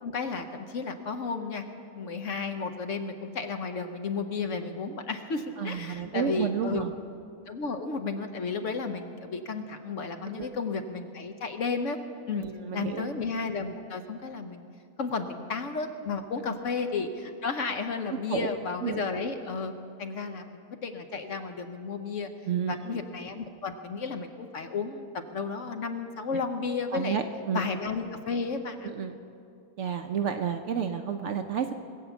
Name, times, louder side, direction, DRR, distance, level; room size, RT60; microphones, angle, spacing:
voice 1, 0.0-1.6 2.0-6.8 7.5-12.0 12.3-12.4 12.7-14.7 15.0-19.7 20.0-22.3 22.7-27.2 27.5-28.9, left 4 dB, 60° left, 7 dB, 1.0 m, -33 dB
voice 2, 5.6-6.9 10.3-10.5 12.3-13.1 18.1-18.5 18.8-19.0 20.3-20.4 22.5-23.0 26.9-27.7 28.8-29.1 29.8-31.7, right 7 dB, 65° right, 7 dB, 0.8 m, -31 dB
20.0 x 8.1 x 7.0 m, 2.5 s
omnidirectional pair, 1.6 m